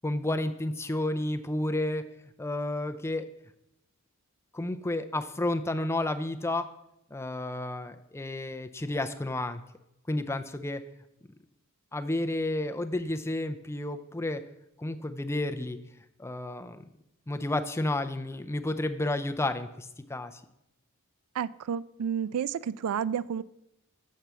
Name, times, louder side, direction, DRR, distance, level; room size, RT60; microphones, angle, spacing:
voice 1, 0.0-2.1 2.4-3.3 4.5-6.7 7.1-9.6 10.1-10.8 11.9-14.4 14.8-15.8 16.2-16.8 17.3-20.4, left 1 dB, 10° left, 8 dB, 0.4 m, -31 dB
voice 2, 21.4-23.4, right 8 dB, 75° right, 18 dB, 0.3 m, -31 dB
7.4 x 4.6 x 6.8 m, 0.85 s
head